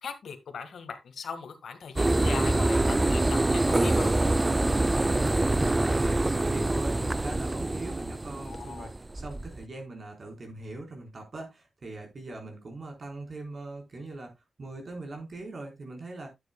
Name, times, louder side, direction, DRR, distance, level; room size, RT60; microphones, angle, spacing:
voice 1, 0.0-4.2 8.5-8.9, left 6 dB, 85° left, 8 dB, 1.7 m, -39 dB
sound 1, 2.0-9.6, right 2 dB, 20° right, 0.4 m, -25 dB
voice 2, 4.4-14.3 14.6-16.3, right 2 dB, 50° right, 2 dB, 4.2 m, -41 dB
12.0 x 9.0 x 2.3 m, 0.20 s
wide cardioid pair, 100°, 0 cm